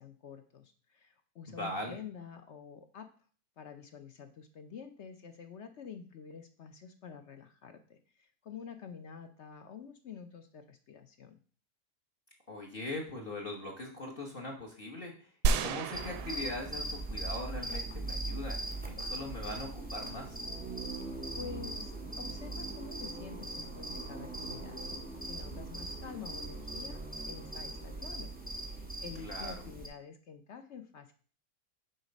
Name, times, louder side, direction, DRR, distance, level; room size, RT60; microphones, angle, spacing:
voice 1, 0.0-3.1 3.6-11.4 21.0-24.8 25.2-28.3 28.6-31.1, left 7 dB, 55° left, 8 dB, 0.8 m, -48 dB
voice 2, 1.5-2.0 12.5-20.4 29.2-29.6, left 1 dB, 35° left, 1 dB, 1.3 m, -41 dB
sound 1, 15.4-17.4 17.7-17.8, right 5 dB, 90° right, 1.2 m, -32 dB
sound 2, 15.9-29.9, right 2 dB, 5° right, 0.9 m, -40 dB
6.5 x 4.6 x 5.2 m, 0.42 s
omnidirectional pair, 1.7 m